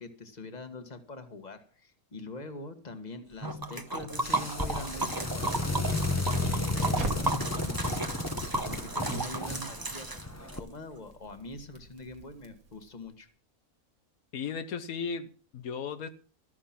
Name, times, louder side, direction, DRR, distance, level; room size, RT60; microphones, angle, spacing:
voice 1, 0.0-5.9 6.3-8.2 8.6-13.3, left 2 dB, 30° left, 1.7 m, -44 dB
Liquid, 3.4-10.6, right 2 dB, 15° right, 0.9 m, -34 dB
sound 1, 4.1-10.6, left 2 dB, 15° left, 0.8 m, -33 dB
Crackle, 6.9-13.1, right 3 dB, 75° right, 2.2 m, -43 dB
voice 2, 14.3-16.1, left 6 dB, 80° left, 1.4 m, -36 dB
13.5 x 11.0 x 5.9 m
omnidirectional pair, 1.5 m